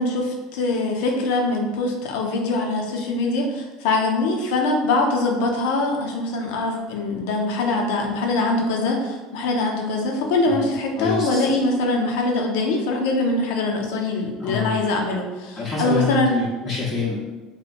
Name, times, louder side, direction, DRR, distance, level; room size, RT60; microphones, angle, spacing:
voice 1, 0.0-16.4, left 2 dB, 75° left, 1 dB, 0.5 m, -23 dB
voice 2, 11.0-11.4 14.4-14.8 15.6-17.1, left 4 dB, 25° left, -8 dB, 0.6 m, -26 dB
2.8 x 2.1 x 2.4 m, 1.2 s
supercardioid pair, 95°, 0 cm